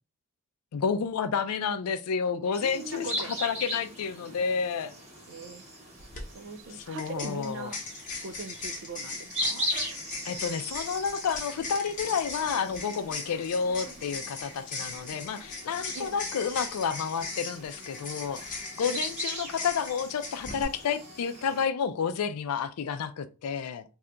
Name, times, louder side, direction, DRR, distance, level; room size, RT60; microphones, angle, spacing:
voice 1, 0.7-3.1 3.4-4.9 6.9-7.7 10.2-23.8, left 6 dB, 80° left, 0.4 m, -30 dB
sound 1, 2.5-21.7, equal, 30° right, 1.2 m, -40 dB
voice 2, 2.6-3.4 5.3-5.6 6.3-7.8 8.2-9.7 15.9-16.2 18.9-19.0, right 3 dB, 55° right, 0.4 m, -40 dB
sound 2, 6.0-6.2 7.0-20.6, left 3 dB, 35° left, 0.8 m, -39 dB
2.7 x 2.5 x 3.3 m
head